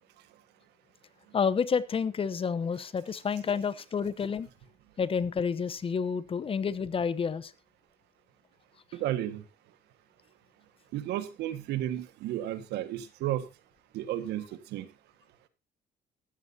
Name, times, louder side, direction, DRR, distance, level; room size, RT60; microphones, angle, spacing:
voice 1, 1.3-4.5 5.0-7.5, left 6 dB, 35° left, 17 dB, 0.9 m, -29 dB
voice 2, 8.9-9.4 10.9-13.5 13.9-14.9, right 12 dB, 85° right, 12 dB, 1.7 m, -33 dB
14.5 x 13.5 x 2.8 m, 0.26 s
cardioid pair, 110°, 17 cm